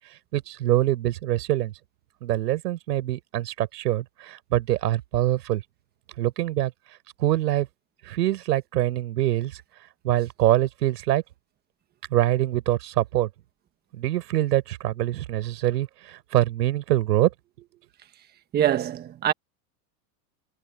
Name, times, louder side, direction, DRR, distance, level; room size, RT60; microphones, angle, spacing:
voice 1, 0.3-1.7 2.2-5.6 6.2-6.7 7.2-7.7 8.0-9.6 10.0-11.2 12.1-13.3 13.9-17.3 17.6-17.7, right 14 dB, 80° right, 5.9 m, -24 dB
voice 2, 18.5-19.3, right 11 dB, 20° right, 1.4 m, -23 dB
supercardioid pair, 160°, 48 cm